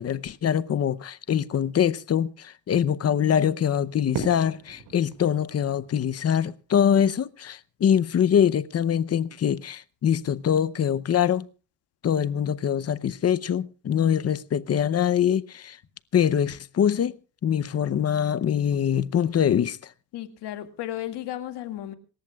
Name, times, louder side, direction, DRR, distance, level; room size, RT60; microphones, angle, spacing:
voice 1, 0.0-11.5 12.0-15.8 16.1-17.1 17.4-19.8, left 9 dB, 40° left, 0.7 m, -24 dB
Fireworks, 4.1-7.2, right 5 dB, 90° right, 5.5 m, -38 dB
voice 2, 20.1-21.9, left 12 dB, 85° left, 2.1 m, -34 dB
26.5 x 14.0 x 2.3 m
cardioid pair, 140°, 40 cm